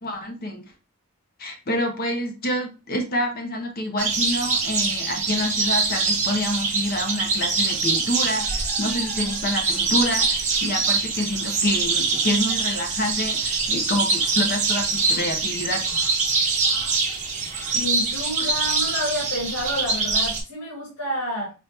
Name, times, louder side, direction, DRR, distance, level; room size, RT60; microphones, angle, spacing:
voice 1, 0.0-0.6 1.4-16.0, left 1 dB, 45° left, 3 dB, 0.7 m, -27 dB
sound 1, 4.0-20.4, right 4 dB, 35° right, 1.0 m, -24 dB
voice 2, 17.7-21.5, left 1 dB, 75° left, -3 dB, 1.6 m, -29 dB
4.2 x 2.4 x 3.2 m, 0.31 s
head